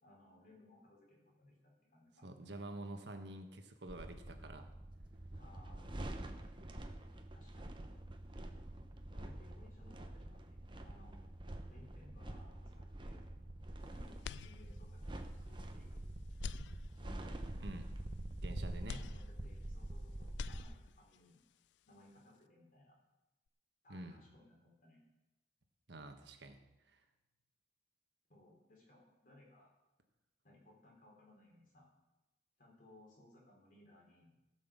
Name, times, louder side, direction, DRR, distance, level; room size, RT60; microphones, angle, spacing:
voice 1, 0.0-2.3 5.3-6.0 7.3-7.8 9.1-11.3 11.7-13.3 13.8-16.1 16.9-17.5 18.6-21.4 21.8-23.0 23.8-25.0 28.3-29.7 30.4-31.9 32.6-34.4, left 1 dB, 50° left, -1 dB, 4.1 m, -63 dB
voice 2, 2.2-4.7 17.6-17.9 18.4-19.0 23.9-24.2 25.9-26.6 26.9-27.0, right 1 dB, 80° right, 6 dB, 1.4 m, -48 dB
sound 1, 3.9-20.6, right 1 dB, 30° right, 1.0 m, -46 dB
sound 2, 14.2-15.1 15.6-15.7 16.3-17.4 18.9-20.0 20.2-21.2, left 7 dB, 85° left, 0.3 m, -48 dB
16.0 x 6.2 x 7.4 m, 1.0 s
head